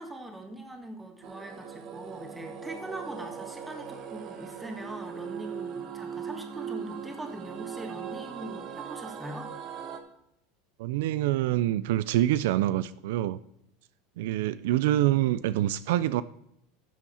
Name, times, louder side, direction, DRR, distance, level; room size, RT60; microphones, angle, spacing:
voice 1, 0.0-9.5, right 1 dB, 5° right, 4 dB, 1.6 m, -41 dB
sound 1, 1.2-10.0, right 7 dB, 35° right, 1.2 m, -39 dB
voice 2, 10.8-13.4 14.2-16.2, right 14 dB, 75° right, 16 dB, 0.4 m, -26 dB
12.5 x 7.2 x 4.3 m, 0.77 s
supercardioid pair, 160°, 0 cm